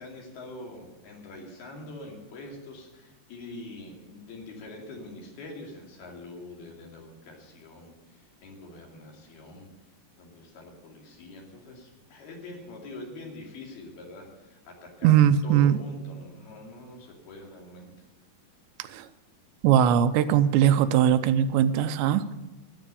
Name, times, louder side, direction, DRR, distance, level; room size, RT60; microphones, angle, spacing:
voice 1, 0.0-9.7 10.2-17.9, left 2 dB, 65° left, -1 dB, 4.5 m, -44 dB
voice 2, 15.0-15.8 18.9-19.0 19.6-22.3, right 9 dB, 90° right, 11 dB, 2.9 m, -20 dB
12.5 x 10.5 x 6.8 m, 1.0 s
omnidirectional pair, 4.9 m